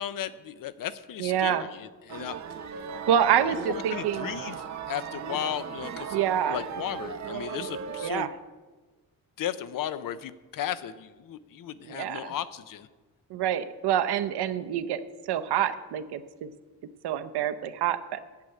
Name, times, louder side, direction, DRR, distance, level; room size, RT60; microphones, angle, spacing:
voice 1, 0.0-2.4 3.7-4.6 4.9-8.3 9.4-12.9, left 10 dB, 60° left, 15 dB, 0.6 m, -35 dB
voice 2, 1.2-1.7 3.1-4.3 6.1-6.6 8.0-8.3 11.9-12.3 13.3-15.0 15.3-16.5 17.0-18.2, right 10 dB, 85° right, 10 dB, 0.8 m, -27 dB
sound 1, 2.1-8.1, right 7 dB, 45° right, 0.8 m, -37 dB
8.3 x 7.8 x 8.5 m, 1.3 s
wide cardioid pair, 180°, 38 cm